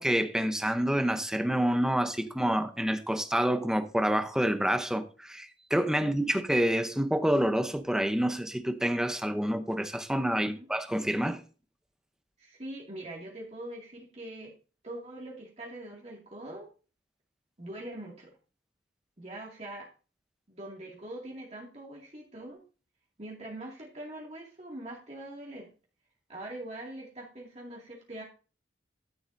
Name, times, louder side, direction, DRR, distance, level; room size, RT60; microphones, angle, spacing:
voice 1, 0.0-11.4, equal, 5° right, 0.7 m, -28 dB
voice 2, 6.0-6.3 10.4-10.7 12.4-14.5 14.8-16.7 17.6-18.3 19.2-19.9 20.5-22.6 23.2-25.7 26.3-28.2, right 1 dB, 35° right, 2.2 m, -43 dB
13.0 x 7.9 x 2.7 m
head